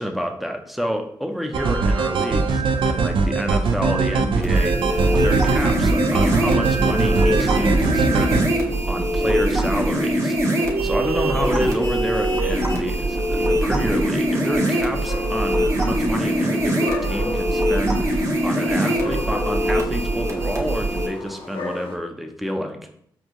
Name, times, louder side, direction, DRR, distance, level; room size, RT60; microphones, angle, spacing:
voice 1, 0.0-22.8, equal, ahead, 4 dB, 0.6 m, -28 dB
sound 1, 1.5-8.4, right 4 dB, 70° right, 0.4 m, -21 dB
sound 2, 4.4-21.1, right 1 dB, 35° right, 1.2 m, -22 dB
sound 3, 7.0-22.0, left 4 dB, 85° left, 0.6 m, -38 dB
4.3 x 2.4 x 3.0 m, 0.69 s
cardioid pair, 50°, 9 cm